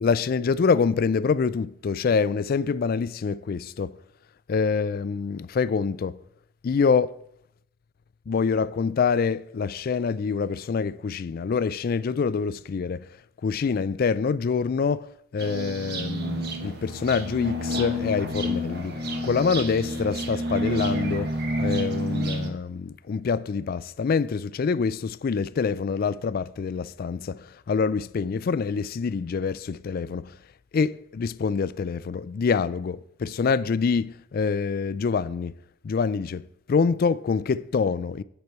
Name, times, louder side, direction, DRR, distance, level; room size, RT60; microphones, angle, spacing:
voice 1, 0.0-4.0 4.5-6.2 6.6-7.2 8.3-13.1 13.4-18.9 19.2-30.4 30.7-35.6 35.8-38.2, left 5 dB, 45° left, 0.3 m, -26 dB
sound 1, 15.4-22.5, equal, 50° right, 1.3 m, -29 dB
8.2 x 7.9 x 4.6 m
head